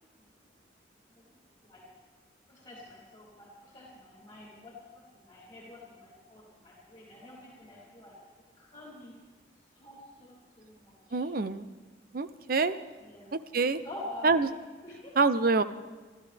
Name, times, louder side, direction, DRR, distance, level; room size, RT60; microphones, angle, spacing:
voice 1, 2.5-8.2 8.6-9.2 9.8-11.3 13.0-13.3 13.8-14.5 14.8-15.1, left 1 dB, 25° left, -4 dB, 3.3 m, -47 dB
voice 2, 11.1-11.7 12.1-12.8 13.3-13.8 14.2-14.5 15.2-15.6, right 4 dB, 55° right, 12 dB, 0.7 m, -26 dB
26.0 x 12.5 x 3.5 m, 1.4 s
head